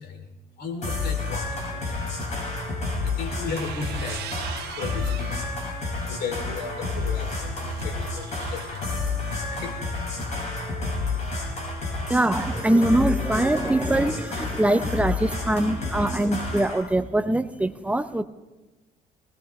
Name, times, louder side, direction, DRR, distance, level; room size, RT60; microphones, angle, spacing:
voice 1, 0.0-2.5 2.8-11.6, left 4 dB, 70° left, 4 dB, 3.0 m, -37 dB
sound 1, 0.8-16.8, left 3 dB, 45° left, 5.7 m, -30 dB
sound 2, 3.2-5.6 6.0-8.9, right 11 dB, 75° right, 1.2 m, -41 dB
voice 2, 12.1-18.2, right 1 dB, 10° right, 10 dB, 0.7 m, -23 dB
19.5 x 19.0 x 3.2 m, 1.1 s
cardioid pair, 110°, 17 cm